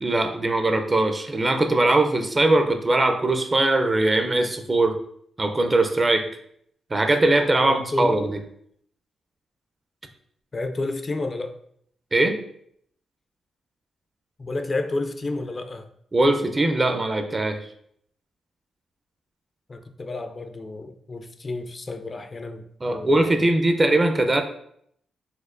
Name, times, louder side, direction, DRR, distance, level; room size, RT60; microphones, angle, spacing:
voice 1, 0.0-5.0 5.4-6.3 6.9-8.4 12.1-12.4 16.1-17.6 22.8-24.4, right 2 dB, 30° right, 6 dB, 0.4 m, -21 dB
voice 2, 7.5-8.2 10.5-11.6 14.4-15.9 19.7-23.5, left 2 dB, 35° left, 8 dB, 0.3 m, -31 dB
4.2 x 2.3 x 2.5 m, 0.68 s
cardioid pair, 70°, 0 cm